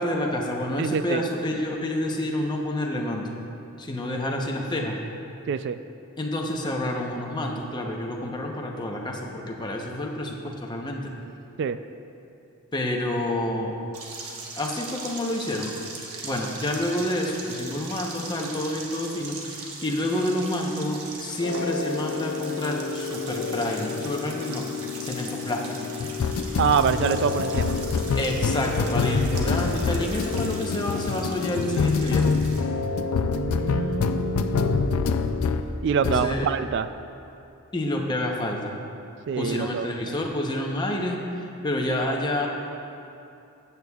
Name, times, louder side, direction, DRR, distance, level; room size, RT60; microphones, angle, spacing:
voice 1, 0.0-3.4 3.8-5.0 6.2-11.0 12.7-13.7 14.6-15.7 16.2-24.6 25.0-25.9 28.1-32.3 36.0-36.5 37.7-38.7 39.4-41.2 41.6-42.5, left 1 dB, 20° left, 0 dB, 0.8 m, -28 dB
voice 2, 0.8-1.2 5.5-5.8 11.6-11.8 26.6-27.8 33.3-35.1 35.8-36.9 39.3-40.2, right 6 dB, 55° right, 12 dB, 0.3 m, -26 dB
sound 1, 13.9-32.6, right 3 dB, 85° right, 1.2 m, -40 dB
sound 2, 21.4-35.7 36.0-36.3, left 4 dB, 80° left, 0.4 m, -26 dB
14.5 x 8.1 x 2.3 m, 2.7 s
head